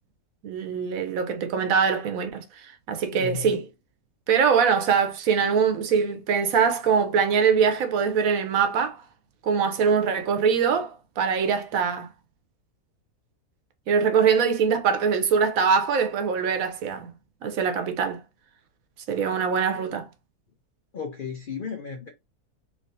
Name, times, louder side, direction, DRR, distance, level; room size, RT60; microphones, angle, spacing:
voice 1, 0.4-3.6 4.3-9.0 9.4-12.1 13.9-17.1 17.4-18.2 19.1-20.1, right 6 dB, 70° right, 1.1 m, -23 dB
voice 2, 3.1-3.6 20.9-22.1, left 6 dB, 70° left, 0.5 m, -34 dB
3.4 x 3.2 x 2.7 m
omnidirectional pair, 1.6 m